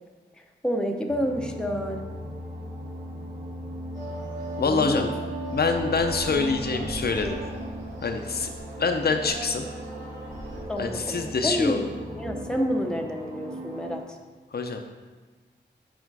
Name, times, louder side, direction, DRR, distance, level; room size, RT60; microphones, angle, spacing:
voice 1, 0.6-2.0 4.6-5.1 10.7-11.8 12.1-14.2, equal, 5° left, 2 dB, 0.7 m, -28 dB
sound 1, 1.1-14.0, equal, 35° right, 1.2 m, -37 dB
sound 2, 3.9-10.6, right 2 dB, 75° right, 2.4 m, -39 dB
voice 2, 4.6-5.1 5.5-7.4 8.0-8.5 8.8-9.7 10.8-11.9 14.5-14.8, left 4 dB, 60° left, 5 dB, 0.6 m, -25 dB
7.9 x 5.0 x 4.7 m, 1.4 s
wide cardioid pair, 130°, 19 cm